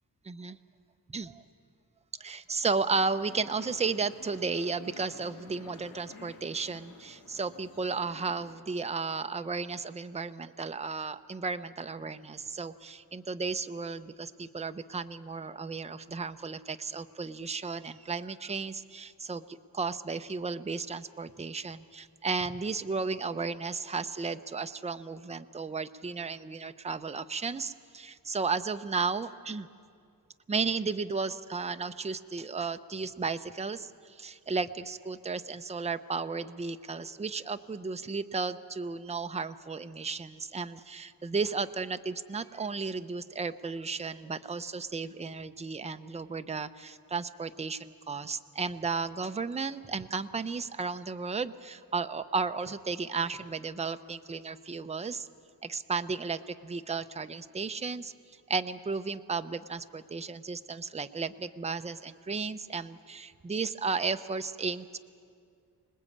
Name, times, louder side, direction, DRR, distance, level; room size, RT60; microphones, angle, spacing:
voice 1, 0.2-0.6 1.1-1.4 2.2-29.7 30.5-55.3 55.6-58.1 58.5-65.0, right 4 dB, 20° right, 10 dB, 0.6 m, -34 dB
sound 1, 2.9-8.5, left 3 dB, 65° left, 3.4 m, -52 dB
26.0 x 20.0 x 8.5 m, 2.3 s
wide cardioid pair, 155°, 37 cm